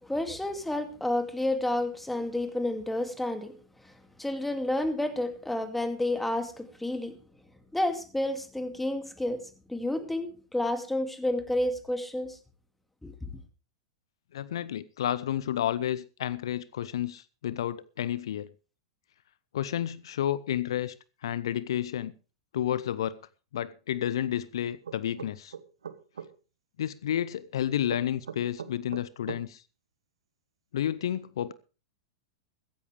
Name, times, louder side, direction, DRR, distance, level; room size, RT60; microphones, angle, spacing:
voice 1, 0.0-3.6 3.8-3.9 4.2-7.2 7.7-12.4 13.0-13.1, left 1 dB, 5° left, 2.4 m, -30 dB
voice 2, 14.3-18.5 19.5-20.9 21.2-22.1 22.5-23.2 23.5-25.5 26.8-29.6 30.7-31.5, left 11 dB, 70° left, 0.6 m, -31 dB
sound 1, 24.9-26.3 27.9-29.4, right 7 dB, 80° right, 1.2 m, -40 dB
15.5 x 15.0 x 3.4 m
hypercardioid pair, 100°, 3 cm